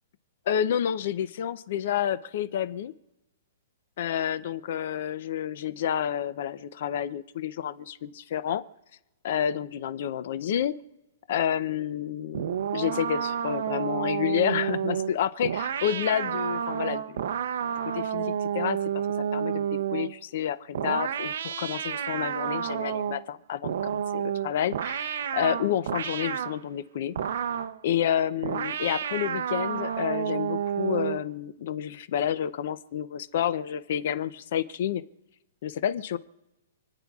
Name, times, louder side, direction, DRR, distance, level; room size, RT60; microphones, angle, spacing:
voice 1, 0.5-2.9 4.0-8.6 9.2-10.7 11.3-12.4 12.7-17.2 17.9-18.8 19.2-27.1 27.8-35.0 35.6-36.2, left 9 dB, 55° left, 14 dB, 0.5 m, -29 dB
sound 1, 12.3-20.2 20.7-23.3 23.6-26.6 27.2-27.8 28.4-31.3, right 8 dB, 70° right, 0.6 m, -30 dB
29.0 x 9.8 x 2.4 m, 1.0 s
hypercardioid pair, 160°, 0 cm